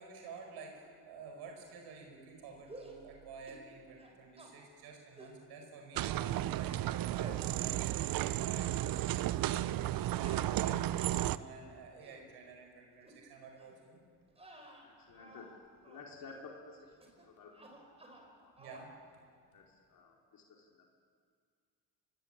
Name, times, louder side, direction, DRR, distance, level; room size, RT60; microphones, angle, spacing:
voice 1, 0.0-14.0 18.6-18.9, right 4 dB, 85° right, 2 dB, 5.0 m, -51 dB
sound 1, 2.7-3.0 3.5-3.7 4.0-4.5 5.2-5.4 5.9-6.5 7.1-7.4 7.9-8.5 8.8-9.1 10.2-11.3 11.8-12.3 13.0-13.2 13.6-13.8 14.3-15.6 15.8-16.1 17.0-17.3 17.5-18.3 18.6-18.9, right 1 dB, 15° right, 5.0 m, -54 dB
sound 2, 6.0-11.4, right 14 dB, 60° right, 0.7 m, -33 dB
voice 2, 14.8-17.7 18.0-18.5 19.5-20.9, left 4 dB, 60° left, -1 dB, 4.1 m, -53 dB
25.0 x 19.5 x 8.8 m, 2.1 s
cardioid pair, 105°, 38 cm